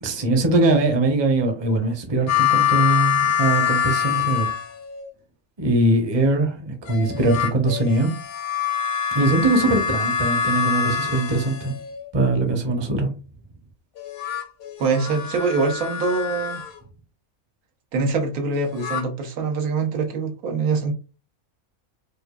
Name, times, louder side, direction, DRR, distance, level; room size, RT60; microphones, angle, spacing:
voice 1, 0.0-4.5 5.6-8.1 9.1-11.7 12.1-13.1, right 2 dB, 30° right, 0.5 m, -21 dB
sound 1, 2.3-5.1 6.9-12.1 14.0-16.8 18.5-19.0, left 8 dB, 85° left, 1.2 m, -25 dB
voice 2, 14.8-16.6 17.9-20.9, right 4 dB, 90° right, 1.3 m, -24 dB
4.8 x 2.3 x 2.3 m
omnidirectional pair, 1.5 m